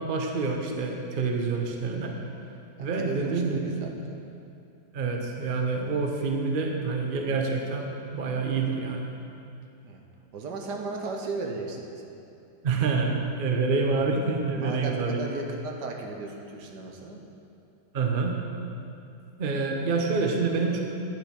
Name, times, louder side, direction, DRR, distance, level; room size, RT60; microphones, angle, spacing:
voice 1, 0.0-2.1 2.8-3.6 4.9-9.1 12.6-15.2 17.9-18.4 19.4-20.8, right 4 dB, 45° right, 2 dB, 0.7 m, -27 dB
voice 2, 2.8-4.2 9.8-10.0 10.3-11.9 14.5-17.2, right 3 dB, 70° right, 2 dB, 1.5 m, -35 dB
10.5 x 6.4 x 5.8 m, 2.6 s
omnidirectional pair, 2.0 m